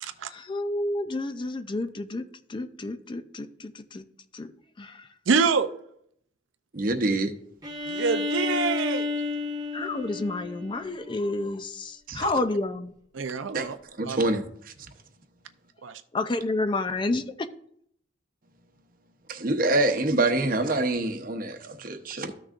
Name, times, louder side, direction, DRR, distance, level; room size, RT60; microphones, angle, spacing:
voice 1, 0.2-2.2 2.5-4.0 4.3-4.5 4.8-5.1 9.7-12.9 16.1-17.5, left 2 dB, 25° left, 0.4 m, -30 dB
voice 2, 5.3-5.7 7.9-9.1 12.2-12.3 13.1-13.8 14.1-14.2 15.8-16.0, right 5 dB, 80° right, 0.5 m, -26 dB
voice 3, 6.7-7.3 12.1-12.2 13.5-13.7 14.0-14.4 19.3-22.3, right 2 dB, 45° right, 0.8 m, -25 dB
Bowed string instrument, 7.6-11.4, left 3 dB, 20° right, 1.0 m, -31 dB
13.5 x 6.2 x 2.5 m
head